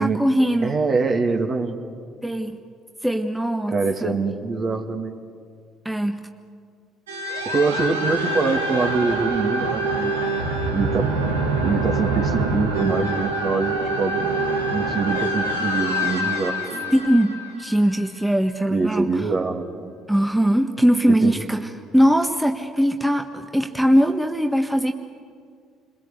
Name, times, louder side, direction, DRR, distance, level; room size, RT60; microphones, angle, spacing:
voice 1, 0.0-0.8 2.2-2.6 3.0-4.2 5.8-6.2 16.9-17.3 17.6-19.3 20.1-24.9, equal, 5° right, 5 dB, 1.5 m, -21 dB
voice 2, 0.6-1.8 3.7-5.2 7.4-10.1 10.7-11.1 11.6-14.2 14.7-16.9 18.7-19.9 21.2-21.3, right 4 dB, 40° right, 4 dB, 2.7 m, -24 dB
sound 1, 7.1-18.3, right 2 dB, 80° right, 1.8 m, -25 dB
29.0 x 22.0 x 8.3 m, 2.1 s
figure-of-eight pair, 55°, 0 cm